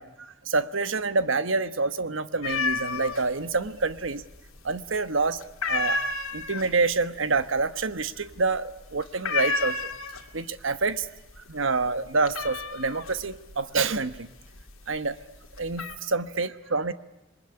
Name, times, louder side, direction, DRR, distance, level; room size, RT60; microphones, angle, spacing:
voice 1, 0.0-4.2 4.6-5.4 5.7-6.0 6.3-9.7 10.3-11.1 11.5-14.3 14.9-15.2 15.6-16.9, right 3 dB, 65° right, 13 dB, 1.2 m, -27 dB
sound 1, 2.4-3.3 3.6-4.3 4.7-5.1 5.4-10.5 10.8-11.4 11.7-14.8 15.3-16.0, left 4 dB, 85° left, 2.4 m, -30 dB
27.0 x 21.0 x 9.8 m, 1.0 s
head